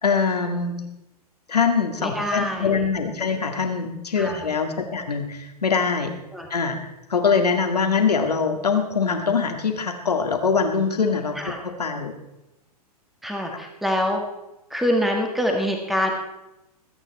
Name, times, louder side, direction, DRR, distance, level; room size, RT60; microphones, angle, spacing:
voice 1, 0.0-0.8 1.5-6.1 6.5-6.8 7.1-11.4 11.8-12.1 13.5-13.6, left 5 dB, 80° left, 4 dB, 2.1 m, -23 dB
voice 2, 2.0-2.9 4.2-4.5 6.3-6.5 11.4-11.6 13.2-14.2 14.7-16.1, equal, ahead, 3 dB, 1.8 m, -25 dB
21.5 x 9.1 x 4.2 m, 0.93 s
figure-of-eight pair, 105°, 20 cm